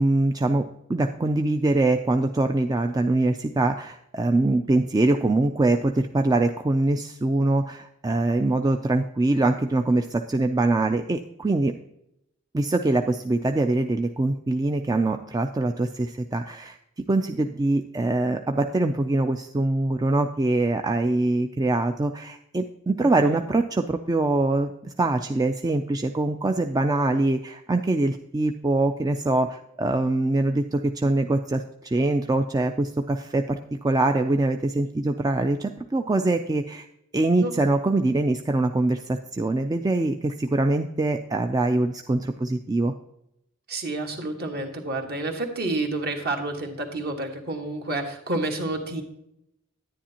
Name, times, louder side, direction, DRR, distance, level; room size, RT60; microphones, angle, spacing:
voice 1, 0.0-11.7 12.5-16.8 17.1-36.9 37.1-42.9, right 2 dB, 20° right, 5 dB, 0.3 m, -23 dB
voice 2, 23.0-23.4 37.4-37.5 43.7-49.0, right 2 dB, 50° right, 3 dB, 1.5 m, -29 dB
10.0 x 10.0 x 2.8 m, 0.81 s
head